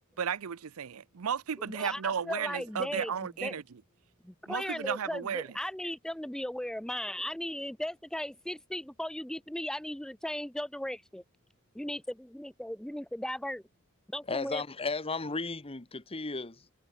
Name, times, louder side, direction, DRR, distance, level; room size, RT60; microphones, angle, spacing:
voice 1, 0.2-3.6 4.5-5.5, right 7 dB, 70° right, 0.6 m, -34 dB
voice 2, 1.6-3.6 4.2-11.2 11.7-13.6 14.1-14.6, left 1 dB, 5° left, 0.4 m, -37 dB
voice 3, 14.3-16.7, left 3 dB, 25° left, 1.2 m, -34 dB
head